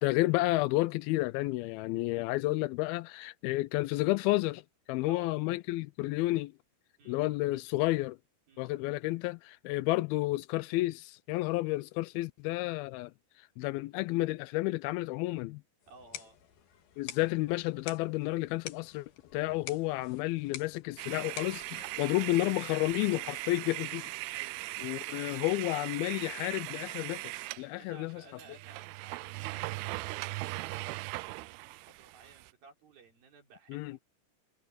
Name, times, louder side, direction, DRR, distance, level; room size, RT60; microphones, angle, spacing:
voice 1, 0.0-4.6 4.9-6.5 7.1-8.2 8.6-13.1 13.6-15.6 17.0-24.1 24.8-27.2 27.6-28.2 33.7-34.0, left 19 dB, 85° left, 2.2 m, -31 dB
voice 2, 7.0-7.7 8.5-8.7 15.9-16.4 24.3-25.1 27.8-34.0, right 4 dB, 60° right, 6.1 m, -57 dB
sound 1, 15.8-22.8, left 11 dB, 65° left, 3.4 m, -48 dB
sound 2, 21.0-27.7 28.1-28.2 28.4-32.5, right 21 dB, 85° right, 2.2 m, -39 dB
omnidirectional pair, 4.8 m